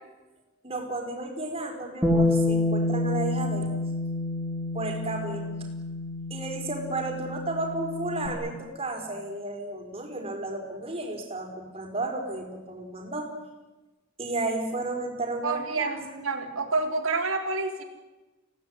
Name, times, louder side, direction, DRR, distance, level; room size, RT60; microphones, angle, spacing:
voice 1, 0.6-3.7 4.7-5.5 6.3-13.3 14.2-15.9, right 2 dB, 30° right, 3 dB, 4.9 m, -33 dB
Bass guitar, 2.0-8.3, left 2 dB, 5° right, 3.1 m, -28 dB
voice 2, 15.4-17.8, right 3 dB, 90° right, 3 dB, 4.0 m, -28 dB
28.0 x 17.5 x 9.7 m, 1.1 s
head